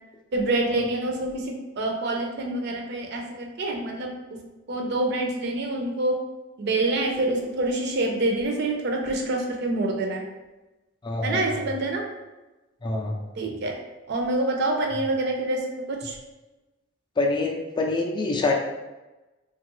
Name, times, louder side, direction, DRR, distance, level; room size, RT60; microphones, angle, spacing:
voice 1, 0.3-4.4 4.7-6.2 6.6-10.3 11.2-12.0 13.4-13.7 14.1-16.2, right 2 dB, 55° right, 1 dB, 0.5 m, -26 dB
voice 2, 11.0-11.5 12.8-13.1 17.2-18.5, left 3 dB, 25° left, 0 dB, 0.3 m, -25 dB
3.1 x 2.3 x 2.9 m, 1.1 s
head